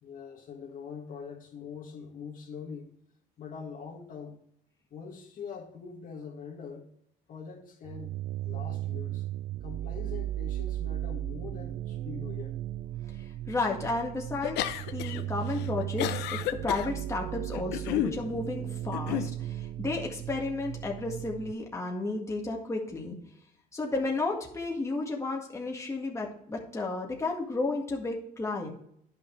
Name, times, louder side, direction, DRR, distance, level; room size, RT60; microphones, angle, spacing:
voice 1, 0.0-2.9 3.4-4.4 4.9-6.9 7.3-8.1 8.4-9.3 9.6-12.6, left 6 dB, 55° left, 1.9 m, -43 dB
sound 1, 7.8-21.5, right 13 dB, 55° right, 0.4 m, -36 dB
voice 2, 13.2-23.2 23.7-28.7, left 3 dB, 15° left, 1.8 m, -33 dB
sound 2, 14.4-15.2 15.5-16.9 17.5-18.2 18.9-19.3, left 12 dB, 80° left, 0.8 m, -31 dB
10.5 x 5.8 x 4.6 m
cardioid pair, 110°, 17 cm